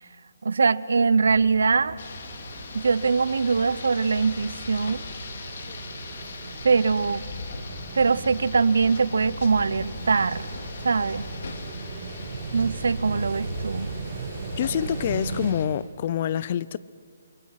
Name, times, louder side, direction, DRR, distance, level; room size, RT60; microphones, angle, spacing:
voice 1, 0.4-2.0 2.7-5.0 6.6-7.2 7.9-10.5 10.8-11.3 12.5-13.9, right 4 dB, 75° right, 19 dB, 0.7 m, -22 dB
sound 1, 1.2-15.5, right 4 dB, 30° right, 4.0 m, -37 dB
Rain, 2.0-15.6, left 4 dB, 55° left, 2.4 m, -40 dB
voice 2, 14.6-16.8, left 10 dB, 35° left, 19 dB, 0.5 m, -26 dB
28.5 x 22.5 x 5.8 m, 2.3 s
hypercardioid pair, 165°, 0 cm